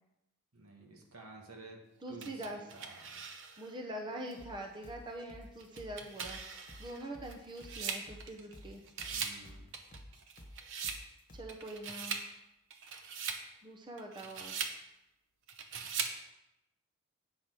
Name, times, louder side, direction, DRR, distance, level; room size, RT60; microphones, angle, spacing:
voice 1, 0.5-3.2 9.1-9.7, right 3 dB, 75° right, 1 dB, 1.7 m, -52 dB
voice 2, 2.0-2.6 3.6-8.8 11.3-12.2 13.6-14.5, right 1 dB, 20° right, 2 dB, 0.8 m, -44 dB
sound 1, 2.2-3.7 4.3-4.4 5.6-8.6 8.9-9.4 9.7-11.0 11.5-12.3 12.7-13.4 14.0-14.8 15.5-16.2, right 6 dB, 60° right, 0.9 m, -41 dB
sound 2, 4.4-11.6, equal, 40° left, 1.4 m, -53 dB
8.8 x 5.2 x 6.0 m, 0.87 s
head